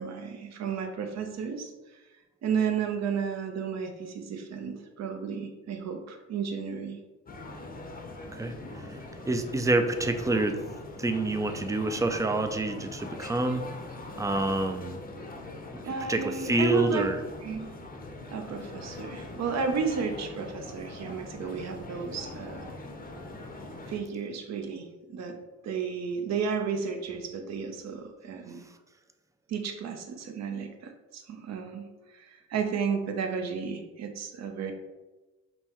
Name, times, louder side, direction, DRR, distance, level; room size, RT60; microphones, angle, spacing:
voice 1, 0.0-2.0 2.4-7.0 15.8-17.1 17.4-17.7 18.3-22.7 23.9-25.4 25.6-28.7 29.5-34.7, right 6 dB, 60° right, 5 dB, 0.7 m, -33 dB
sound 1, 7.3-24.0, left 2 dB, 30° left, 0.6 m, -42 dB
voice 2, 9.3-10.6 11.0-13.7 14.2-15.0 15.7-15.8 16.1-16.2 16.5-17.2, right 2 dB, 10° right, 7 dB, 0.3 m, -27 dB
5.4 x 2.1 x 2.9 m, 1.1 s
cardioid pair, 90°, 30 cm